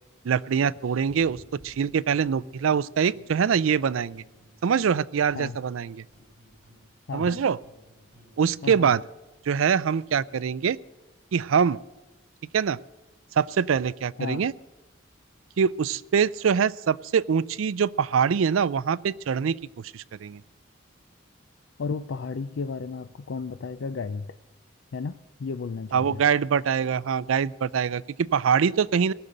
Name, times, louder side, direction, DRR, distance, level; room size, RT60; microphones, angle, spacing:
voice 1, 0.2-4.2 4.6-6.0 7.1-7.6 8.4-9.0 9.5-10.8 11.3-11.8 12.5-12.8 13.4-14.5 15.6-19.6 19.9-20.4 25.9-29.1, right 7 dB, 85° right, 20 dB, 0.4 m, -24 dB
sound 1, 1.1-2.8 3.1-4.9 5.1-8.9, equal, 55° right, 6.6 m, -55 dB
voice 2, 7.1-7.4 8.6-8.9 14.2-14.5 21.8-24.4 24.9-26.2, left 4 dB, 70° left, 11 dB, 0.4 m, -33 dB
19.0 x 6.7 x 8.7 m, 1.1 s
head